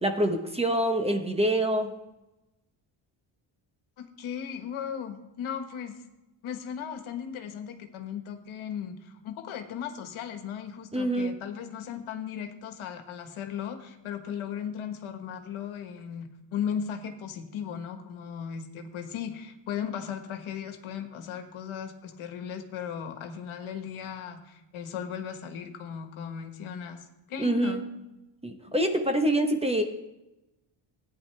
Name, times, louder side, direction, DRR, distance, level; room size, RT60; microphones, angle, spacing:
voice 1, 0.0-1.9 10.9-11.3 27.4-27.8 28.4-29.8, right 1 dB, 10° right, 5 dB, 0.9 m, -25 dB
voice 2, 4.0-6.0 6.4-27.8, left 8 dB, 80° left, 7 dB, 1.4 m, -37 dB
15.5 x 9.5 x 3.3 m, 0.96 s
cardioid pair, 140°, 48 cm